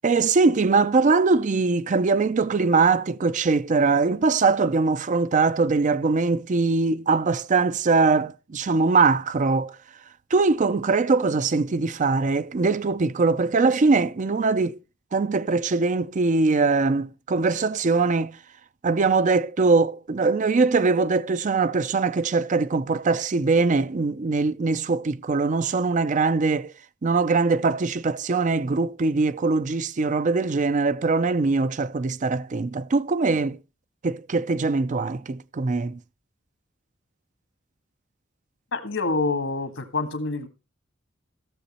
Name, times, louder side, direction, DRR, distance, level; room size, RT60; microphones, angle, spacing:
voice 1, 0.0-9.8 10.3-14.8 15.1-18.4 18.8-26.7 27.0-33.6 34.0-36.0, right 4 dB, 40° right, 0.5 m, -22 dB
voice 2, 38.7-40.5, left 3 dB, 75° left, 1.8 m, -26 dB
15.5 x 6.9 x 4.2 m
head